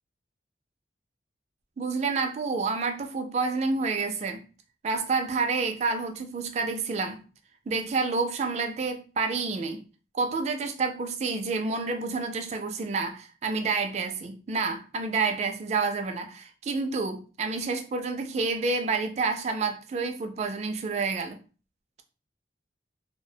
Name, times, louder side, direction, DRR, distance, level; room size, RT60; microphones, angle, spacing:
voice 1, 1.8-4.5 4.8-7.2 7.7-9.8 10.1-21.4, right 4 dB, 40° right, 0.3 m, -29 dB
2.3 x 2.1 x 2.6 m
head